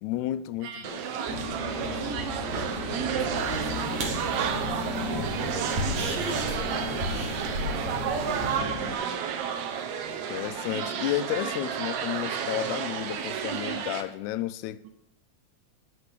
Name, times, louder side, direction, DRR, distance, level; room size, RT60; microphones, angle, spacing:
voice 1, 0.0-1.0 10.3-14.9, left 14 dB, 80° left, 1.9 m, -32 dB
voice 2, 0.6-9.3 14.8-14.9, right 5 dB, 90° right, 2.6 m, -39 dB
sound 1, 0.8-14.0, right 7 dB, 70° right, 2.1 m, -32 dB
sound 2, 1.2-8.9, left 2 dB, 25° right, 2.9 m, -35 dB
sound 3, 3.4-8.6, equal, 50° right, 2.7 m, -36 dB
13.0 x 4.8 x 8.3 m
omnidirectional pair, 3.7 m